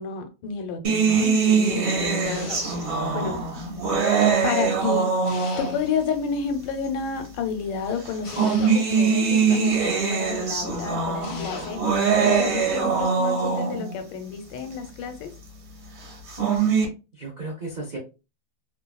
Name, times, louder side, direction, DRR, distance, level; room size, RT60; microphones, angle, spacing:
voice 1, 0.0-3.4 4.4-15.3, left 6 dB, 90° left, 1.4 m, -31 dB
sound 1, 0.8-5.9 6.9-7.0 8.0-13.9 16.1-16.8, right 5 dB, 45° right, 0.9 m, -23 dB
sound 2, 2.2-3.1 5.3-6.2 8.2-9.3 11.2-12.0, left 5 dB, 70° left, 0.8 m, -40 dB
voice 2, 16.4-16.7 17.1-18.0, right 2 dB, 85° right, 0.4 m, -36 dB
3.0 x 2.5 x 2.2 m
omnidirectional pair, 1.9 m